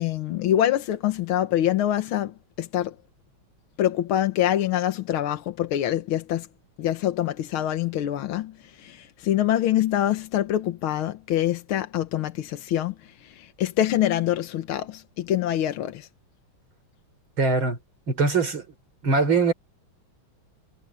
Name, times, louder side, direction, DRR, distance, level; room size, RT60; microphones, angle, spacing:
voice 1, 0.0-3.0 3.8-6.5 6.8-16.1, left 12 dB, 85° left, 1.9 m, -25 dB
voice 2, 17.4-17.8 18.1-18.7 19.0-19.5, right 4 dB, 75° right, 5.1 m, -22 dB
omnidirectional pair, 2.2 m